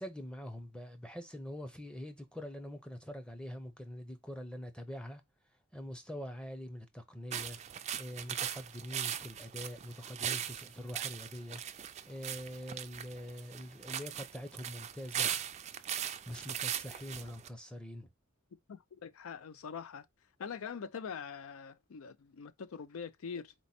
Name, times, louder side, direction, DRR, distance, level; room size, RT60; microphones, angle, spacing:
voice 1, 0.0-5.2 5.7-7.6 8.0-11.6 12.1-15.3 16.2-18.1, equal, 5° left, 0.7 m, -44 dB
sound 1, 7.3-17.5, right 10 dB, 35° right, 0.3 m, -39 dB
voice 2, 18.7-20.1 20.4-23.5, left 6 dB, 80° left, 0.5 m, -43 dB
4.2 x 3.0 x 4.1 m
head